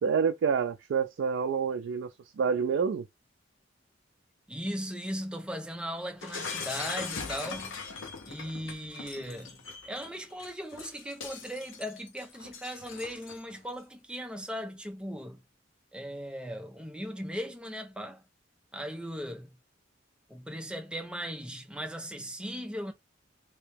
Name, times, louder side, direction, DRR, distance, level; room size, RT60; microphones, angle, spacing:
voice 1, 0.0-2.1 2.4-3.0, right 6 dB, 75° right, 0.3 m, -27 dB
voice 2, 4.5-7.8 8.3-15.4 15.9-18.2 18.7-19.5 20.3-22.9, equal, 5° right, 0.5 m, -38 dB
Shatter, 6.2-13.6, left 5 dB, 85° left, 0.8 m, -40 dB
3.0 x 2.8 x 3.3 m
head